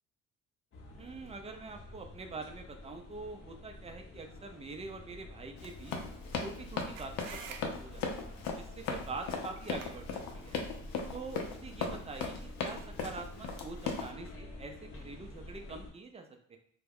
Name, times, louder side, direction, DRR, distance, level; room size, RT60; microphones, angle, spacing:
sound 1, 0.7-15.9, left 1 dB, 40° left, 0.8 m, -49 dB
voice 1, 1.0-5.9 6.4-10.6 11.1-16.6, right 3 dB, 20° right, 4 dB, 0.5 m, -45 dB
Run, 5.6-14.1, left 5 dB, 70° left, 0.6 m, -37 dB
sound 2, 5.9-11.0, right 6 dB, 70° right, 0.5 m, -52 dB
2.2 x 2.1 x 3.4 m, 0.63 s
supercardioid pair, 60°, 35 cm